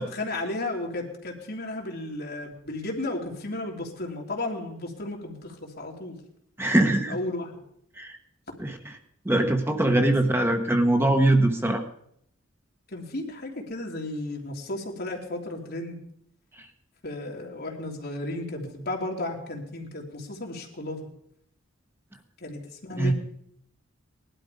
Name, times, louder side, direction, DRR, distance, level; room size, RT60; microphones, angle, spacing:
voice 1, 0.0-6.2 7.1-7.6 10.0-10.1 12.9-16.0 17.0-21.1 22.4-23.1, left 2 dB, 55° left, 1 dB, 3.0 m, -34 dB
voice 2, 6.6-7.2 8.0-8.2 8.6-9.0 9.2-11.8 16.6-16.7 23.0-23.1, right 1 dB, 10° right, 5 dB, 1.1 m, -22 dB
19.5 x 12.0 x 5.1 m, 0.71 s
head